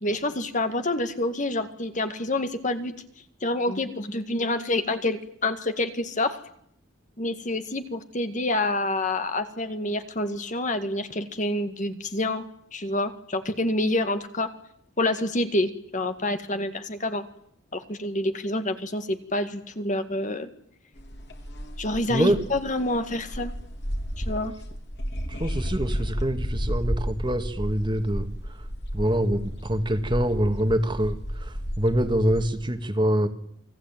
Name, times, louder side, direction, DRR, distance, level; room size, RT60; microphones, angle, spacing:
voice 1, 0.0-2.9 3.4-6.4 7.2-12.5 12.7-14.5 15.0-17.3 17.7-20.5 21.8-23.5 24.2-24.5, left 1 dB, 35° left, 8 dB, 1.9 m, -27 dB
sound 1, 21.0-32.5, equal, 55° left, 4.0 m, -32 dB
voice 2, 25.4-28.3 28.9-31.1 31.4-33.3, equal, 25° right, 7 dB, 2.0 m, -25 dB
29.0 x 20.5 x 9.2 m, 0.70 s
head